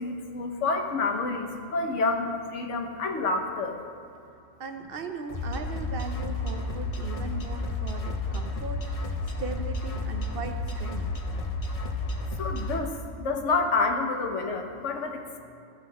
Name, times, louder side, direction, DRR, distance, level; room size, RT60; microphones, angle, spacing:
voice 1, 0.0-3.8 12.4-15.4, left 3 dB, 80° left, 4 dB, 1.2 m, -28 dB
voice 2, 4.6-11.1, right 4 dB, 55° right, 6 dB, 0.8 m, -38 dB
sound 1, 5.3-12.8, left 2 dB, 35° left, 0.7 m, -31 dB
13.5 x 5.9 x 4.1 m, 2.6 s
omnidirectional pair, 1.2 m